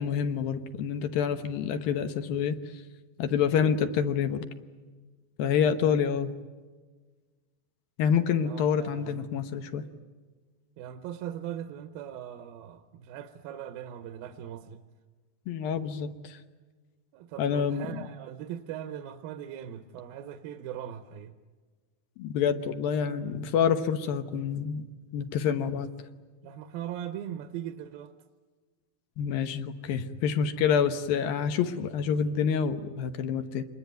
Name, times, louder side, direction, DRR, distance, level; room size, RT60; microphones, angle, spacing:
voice 1, 0.0-2.6 3.2-4.5 5.4-6.3 8.0-9.8 15.5-16.4 17.4-18.1 22.2-24.9 25.1-25.9 29.2-33.6, left 7 dB, 75° left, 8 dB, 2.8 m, -27 dB
voice 2, 8.4-9.3 10.8-14.8 17.1-21.3 26.4-28.1, right 10 dB, 75° right, 8 dB, 2.6 m, -40 dB
26.5 x 21.0 x 9.3 m, 1.4 s
omnidirectional pair, 4.3 m